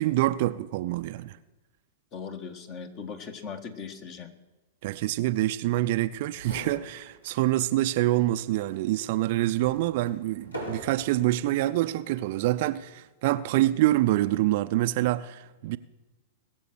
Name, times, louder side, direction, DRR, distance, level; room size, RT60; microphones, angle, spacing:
voice 1, 0.0-1.4 4.8-15.8, right 15 dB, 50° right, 0.5 m, -26 dB
voice 2, 2.1-4.3, left 6 dB, 40° left, 1.6 m, -39 dB
sound 1, 6.0-6.1 6.3-7.5 7.9-8.0 8.7-11.3 12.1-12.4, right 1 dB, 85° left, 4.3 m, -42 dB
20.5 x 7.6 x 6.2 m
figure-of-eight pair, 100°, 0 cm